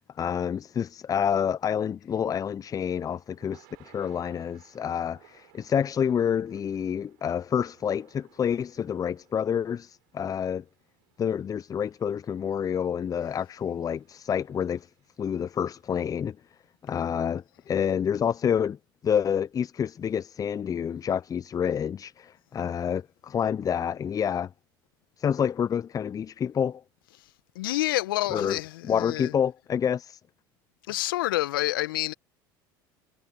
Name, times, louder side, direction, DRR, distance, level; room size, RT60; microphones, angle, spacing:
voice 1, 0.2-10.6 11.2-14.9 15.2-16.4 16.8-18.8 19.0-24.5 25.2-26.8 28.3-28.6 28.8-30.2, left 8 dB, 30° left, 0.6 m, -28 dB
Thunder / Rain, 2.6-16.6, right 31 dB, 70° right, 7.5 m, -63 dB
voice 2, 27.5-29.3 30.9-32.1, left 16 dB, 80° left, 1.4 m, -28 dB
hypercardioid pair, 75°, 11 cm